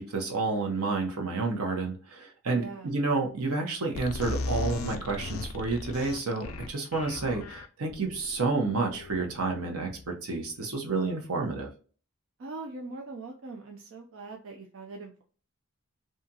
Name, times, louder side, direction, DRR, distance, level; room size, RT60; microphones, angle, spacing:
voice 1, 0.0-11.7, right 3 dB, 85° right, 2 dB, 0.8 m, -30 dB
voice 2, 2.5-2.9 12.4-15.2, right 3 dB, 60° right, 1 dB, 0.4 m, -41 dB
sound 1, 4.0-10.4, left 2 dB, 65° left, 0.4 m, -37 dB
2.8 x 2.3 x 2.7 m, 0.40 s
head